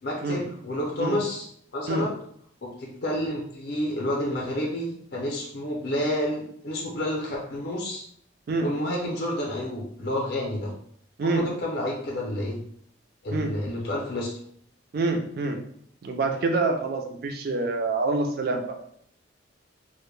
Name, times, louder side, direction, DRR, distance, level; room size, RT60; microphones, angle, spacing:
voice 1, 0.0-2.1 2.6-8.0 8.6-10.7 11.2-12.6 13.2-14.3, left 1 dB, 55° left, -2 dB, 0.5 m, -29 dB
voice 2, 14.9-15.6 16.0-18.8, right 3 dB, 50° right, 4 dB, 0.3 m, -26 dB
2.1 x 2.1 x 3.0 m, 0.65 s
head